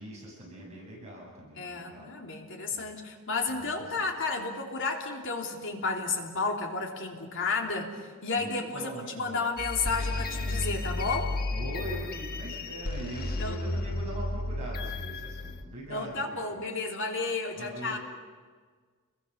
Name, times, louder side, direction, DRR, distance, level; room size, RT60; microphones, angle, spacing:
voice 1, 0.0-2.1 2.7-2.9 3.5-4.1 8.4-9.4 11.5-16.6 17.6-18.0, equal, 30° right, -3 dB, 7.9 m, -42 dB
voice 2, 1.6-11.4 13.4-13.6 15.9-18.0, left 3 dB, 60° left, 1 dB, 3.3 m, -32 dB
sound 1, 9.6-15.6, left 2 dB, 40° left, 1.4 m, -33 dB
29.0 x 22.0 x 6.9 m, 1.5 s
head